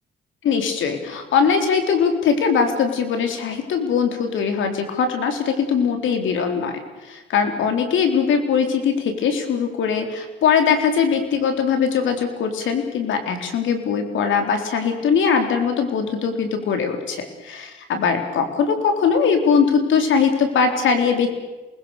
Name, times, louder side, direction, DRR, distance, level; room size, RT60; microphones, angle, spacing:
voice 1, 0.4-21.3, left 6 dB, 75° left, 6 dB, 4.2 m, -21 dB
28.0 x 20.5 x 6.9 m, 1.1 s
cardioid pair, 90°, 20 cm